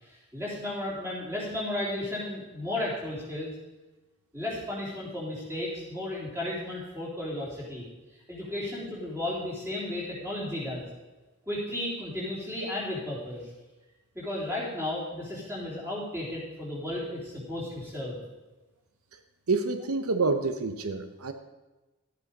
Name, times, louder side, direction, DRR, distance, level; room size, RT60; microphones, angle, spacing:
voice 1, 0.0-3.5 4.3-7.9 8.3-10.8 11.5-13.5 14.2-18.2, left 1 dB, 10° right, -5 dB, 3.5 m, -34 dB
voice 2, 19.5-21.3, right 3 dB, 80° right, 8 dB, 0.8 m, -27 dB
13.0 x 8.2 x 5.3 m, 1.1 s
head